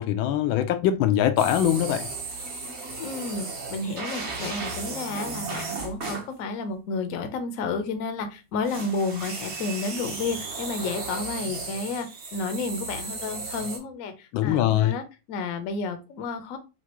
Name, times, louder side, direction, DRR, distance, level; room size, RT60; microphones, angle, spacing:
voice 1, 0.0-2.1 14.3-14.9, left 11 dB, 90° left, 1.4 m, -22 dB
sound 1, 1.4-6.3 8.6-13.8, right 3 dB, 45° right, 1.0 m, -35 dB
voice 2, 3.0-16.6, left 3 dB, 65° left, 0.9 m, -31 dB
5.9 x 2.5 x 2.9 m
omnidirectional pair, 2.1 m